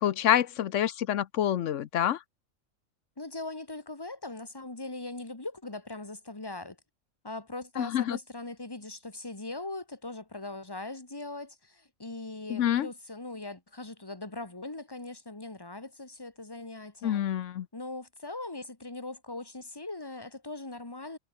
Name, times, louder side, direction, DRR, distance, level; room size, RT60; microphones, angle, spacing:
voice 1, 0.0-2.2 7.8-8.2 12.5-12.9 17.0-17.7, left 11 dB, 80° left, 1.1 m, -27 dB
voice 2, 3.2-6.8 7.2-17.2 17.7-21.2, left 2 dB, 20° left, 2.1 m, -40 dB
omnidirectional pair, 1.3 m